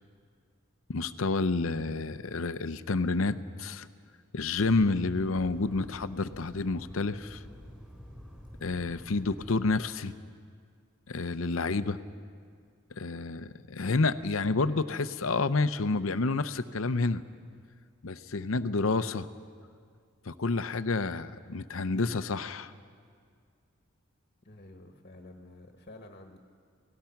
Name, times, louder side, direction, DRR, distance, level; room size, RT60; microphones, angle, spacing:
voice 1, 0.9-3.9 4.3-7.4 8.6-10.1 11.1-12.0 13.0-17.2 18.0-19.3 20.3-22.7, left 3 dB, 70° left, 13 dB, 0.7 m, -29 dB
sound 1, 4.5-9.8, equal, 5° right, 4.6 m, -48 dB
voice 2, 24.4-26.4, left 2 dB, 40° left, 4 dB, 1.4 m, -50 dB
28.5 x 18.5 x 5.9 m, 2.1 s
head